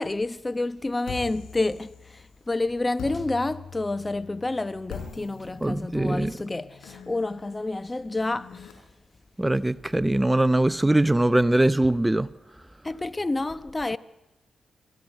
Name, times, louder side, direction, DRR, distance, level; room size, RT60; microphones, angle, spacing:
voice 1, 0.0-8.7 12.8-14.0, left 2 dB, 25° left, 0.9 m, -29 dB
sound 1, 1.0-2.4 3.0-8.7, left 7 dB, 80° left, 4.5 m, -43 dB
voice 2, 5.6-6.3 9.4-12.3, right 1 dB, 15° right, 0.7 m, -22 dB
25.5 x 15.0 x 9.2 m
supercardioid pair, 45°, 0 cm